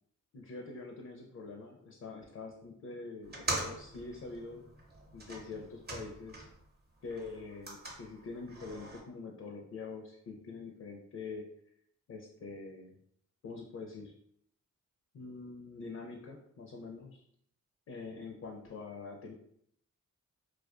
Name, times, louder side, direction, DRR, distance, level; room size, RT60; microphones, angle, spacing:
voice 1, 0.3-4.6 5.1-6.5 7.0-11.4 12.1-12.9 13.4-14.1 15.1-17.2 17.9-19.3, left 4 dB, 50° left, 1 dB, 0.5 m, -45 dB
sound 1, 3.2-6.7 7.0-9.0, right 2 dB, 30° right, 0.7 m, -42 dB
2.3 x 2.2 x 2.4 m, 0.70 s
cardioid pair, 50°, 34 cm